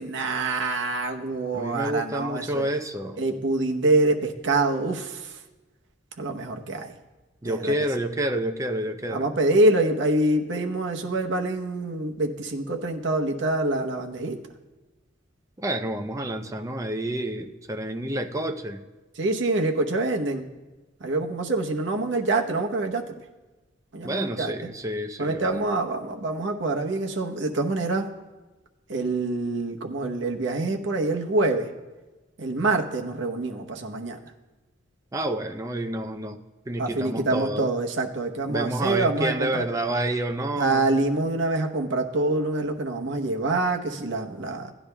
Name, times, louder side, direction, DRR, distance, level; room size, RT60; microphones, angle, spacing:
voice 1, 0.0-2.7 3.2-5.4 6.2-7.0 7.4-7.7 9.1-14.4 19.1-20.5 21.0-23.2 23.9-24.7 25.2-28.1 28.9-31.7 32.4-34.2 36.8-39.6 40.6-44.7, right 2 dB, 70° right, 2 dB, 0.9 m, -26 dB
voice 2, 1.5-3.2 7.4-9.3 15.6-18.8 24.0-25.6 35.1-36.4 36.7-37.7 38.5-40.9, right 1 dB, 15° right, 6 dB, 0.5 m, -29 dB
17.0 x 10.0 x 2.2 m, 1.2 s
head